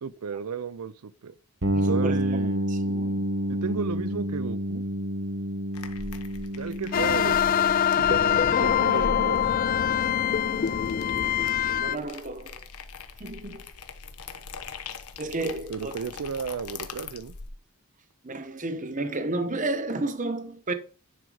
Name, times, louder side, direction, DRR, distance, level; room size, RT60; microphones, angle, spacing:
voice 1, 0.0-1.3 1.9-2.7 3.6-4.8 6.6-7.4 7.9-9.5 15.7-17.3, right 6 dB, 80° right, 0.5 m, -33 dB
sound 1, 1.6-11.3, equal, 60° right, 1.4 m, -30 dB
voice 2, 1.7-2.2 2.7-3.2 11.8-12.6 13.2-13.6 15.2-15.9 18.2-20.7, right 2 dB, 35° right, 0.9 m, -32 dB
sound 2, 5.7-17.5, left 4 dB, 85° left, 1.0 m, -42 dB
sound 3, 6.9-12.0, left 9 dB, 40° left, 0.3 m, -24 dB
10.0 x 4.6 x 4.9 m
head